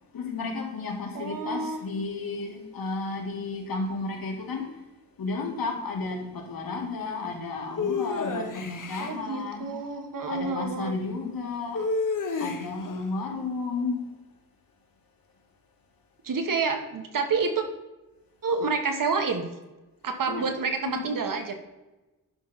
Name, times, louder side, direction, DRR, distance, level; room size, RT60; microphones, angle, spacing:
voice 1, 0.1-4.7 5.2-9.7 10.2-11.9 12.4-14.0 20.3-20.5 20.9-21.1, left 3 dB, 80° left, 1.9 m, -32 dB
voice 2, 1.1-1.8 9.0-10.9 16.2-17.6 18.4-19.4 20.0-21.5, right 4 dB, 70° right, 1.4 m, -28 dB
sound 1, 7.8-9.2 11.7-12.9, left 4 dB, 60° left, 1.1 m, -29 dB
10.5 x 5.8 x 4.2 m
wide cardioid pair, 110°, 35 cm